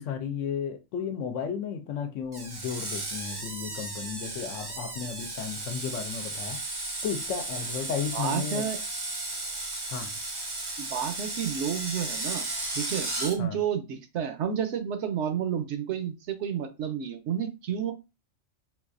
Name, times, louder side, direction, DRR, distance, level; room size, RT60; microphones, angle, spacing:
voice 1, 0.0-6.6 7.0-8.7 9.9-10.2 13.4-13.6, left 7 dB, 75° left, 0.9 m, -34 dB
Screech, 2.3-13.4, right 2 dB, 30° right, 0.4 m, -35 dB
voice 2, 8.1-8.8 10.8-12.4 12.7-17.9, right 8 dB, 70° right, 0.8 m, -30 dB
3.9 x 2.4 x 2.5 m
omnidirectional pair, 1.3 m